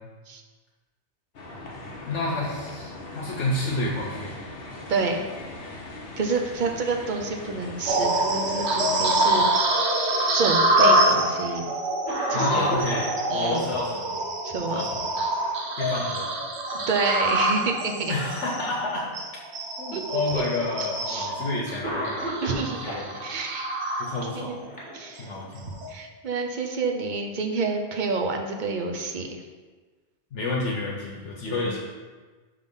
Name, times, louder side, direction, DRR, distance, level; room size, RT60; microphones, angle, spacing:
sound 1, 1.3-9.4, left 2 dB, 55° left, 1.0 m, -40 dB
voice 1, 2.0-4.3 12.3-13.1 13.3-14.2 14.7-15.1 15.8-16.3 18.1-19.1 19.8-22.2 22.6-23.2 24.0-24.6 25.2-25.8 30.3-31.8, left 2 dB, 80° left, -3 dB, 1.2 m, -29 dB
voice 2, 4.9-5.3 6.2-9.8 10.3-11.7 12.3-12.7 13.3-13.7 14.4-14.8 15.4-15.5 16.7-18.1 19.9-20.4 21.1-21.3 22.4-22.8 23.2-23.7 24.3-24.7 24.9-25.3 25.9-29.4 31.5-31.7, right 4 dB, 50° right, 3 dB, 0.7 m, -28 dB
sound 2, 7.9-24.5 25.0-25.2 25.7-25.9, right 1 dB, 70° right, 1.1 m, -26 dB
Cough, 10.2-11.1 11.6-11.7 12.1-13.6 15.5-15.9 16.2-16.3 17.2-17.9 18.6-18.7 19.8-19.9 21.0-21.2 21.8-23.1 24.0-25.5, right 1 dB, 5° left, 1.7 m, -33 dB
5.7 x 3.8 x 5.3 m, 1.4 s
omnidirectional pair, 1.2 m